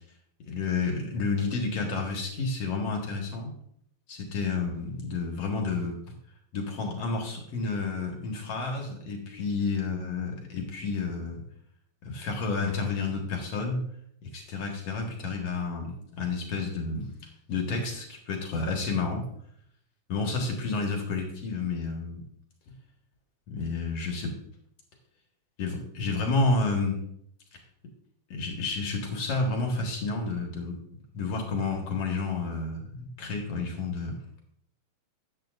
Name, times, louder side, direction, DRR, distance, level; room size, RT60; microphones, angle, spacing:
voice 1, 0.5-3.5 4.1-6.0 6.5-11.4 12.0-13.8 14.2-17.1 17.5-19.2 20.1-22.2 23.5-24.4 25.6-27.0 28.3-34.2, left 3 dB, 60° left, 1 dB, 2.5 m, -30 dB
13.5 x 8.9 x 2.5 m, 0.69 s
omnidirectional pair, 3.3 m